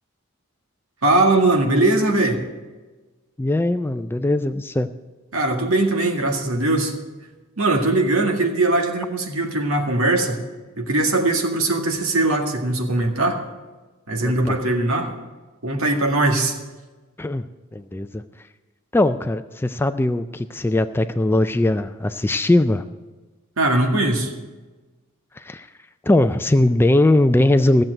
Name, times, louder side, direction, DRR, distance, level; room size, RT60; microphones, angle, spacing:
voice 1, 1.0-2.4 5.3-6.9 7.6-10.4 10.8-13.4 14.1-15.1 15.6-16.6 23.6-24.3, right 2 dB, 75° right, 3 dB, 1.9 m, -20 dB
voice 2, 3.4-4.9 14.2-14.6 17.2-17.5 17.7-18.2 18.9-22.8 25.4-25.7 26.0-27.8, left 1 dB, 10° left, 10 dB, 0.3 m, -20 dB
14.5 x 7.5 x 7.8 m, 1.2 s
head